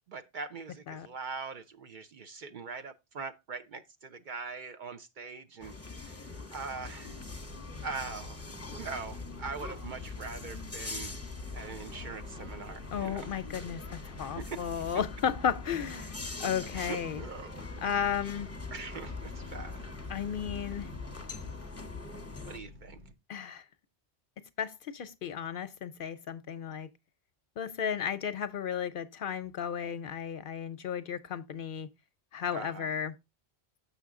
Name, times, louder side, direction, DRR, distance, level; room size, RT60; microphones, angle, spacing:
voice 1, 0.1-7.2 7.8-8.5 8.8-11.1 11.5-13.3 14.2-14.8 16.7-17.5 18.7-19.8 22.4-23.0 32.5-32.9, right 4 dB, 55° right, 0.6 m, -42 dB
sound 1, 5.6-22.6, left 3 dB, 15° left, 0.8 m, -43 dB
sound 2, 7.0-23.1, left 2 dB, 90° right, 1.2 m, -49 dB
voice 2, 12.9-16.1 16.4-17.2 17.8-18.5 20.1-20.9 23.3-23.6 24.6-26.9 27.6-31.9 32.3-33.1, left 8 dB, 60° left, 0.7 m, -34 dB
7.0 x 5.8 x 3.5 m
omnidirectional pair, 1.1 m